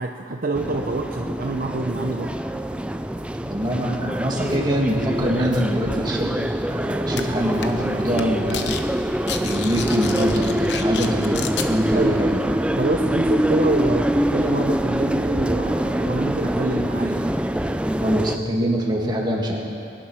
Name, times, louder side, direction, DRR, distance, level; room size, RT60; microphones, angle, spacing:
voice 1, 0.0-2.3 11.9-12.2 12.7-17.3, right 3 dB, 50° right, 2 dB, 0.7 m, -26 dB
sound 1, 0.5-18.4, right 1 dB, 5° right, 0.3 m, -24 dB
voice 2, 3.4-8.8 9.4-12.4 18.0-19.6, equal, 25° right, -2 dB, 2.1 m, -24 dB
sound 2, 7.2-7.3 7.6-7.9 8.1-8.8 9.1-11.7, left 7 dB, 65° left, 0.9 m, -31 dB
21.5 x 10.5 x 6.3 m, 2.5 s
head